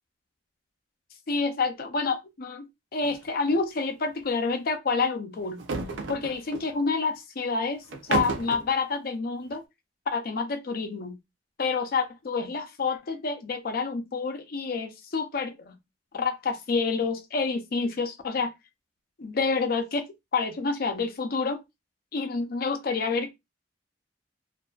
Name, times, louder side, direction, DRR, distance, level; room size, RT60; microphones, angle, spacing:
voice 1, 1.3-5.6 6.1-9.6 10.1-11.2 11.6-15.8 16.1-18.5 19.2-20.1 20.3-21.6 22.1-23.3, left 4 dB, 55° left, 0.5 m, -28 dB
sound 1, 3.0-3.2 3.5-3.6 5.5-6.7 7.9-8.7, right 4 dB, 75° right, 0.5 m, -32 dB
2.5 x 2.3 x 2.3 m
head